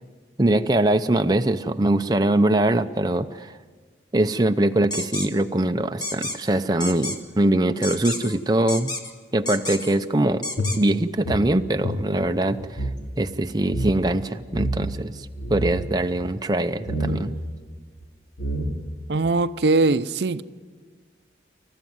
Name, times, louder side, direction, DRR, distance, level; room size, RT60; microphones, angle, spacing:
voice 1, 0.4-3.6 4.1-8.9 9.3-10.5 10.8-12.9 13.2-17.3, right 1 dB, 20° right, 7 dB, 0.6 m, -22 dB
sound 1, 4.9-5.3 6.0-6.4 6.8-7.2 7.8-8.4 8.7-9.1 9.5-10.0 10.4-10.8, left 2 dB, 25° left, 1.7 m, -30 dB
sound 2, 10.6-13.0 13.3-13.4 13.6-13.9 14.5-15.0 15.3-15.9 16.9-17.3 18.0-18.1 18.4-19.0, right 1 dB, 70° left, 3.1 m, -28 dB
voice 2, 19.1-20.4, right 3 dB, 70° right, 13 dB, 0.6 m, -21 dB
27.0 x 14.5 x 9.4 m, 1.5 s
head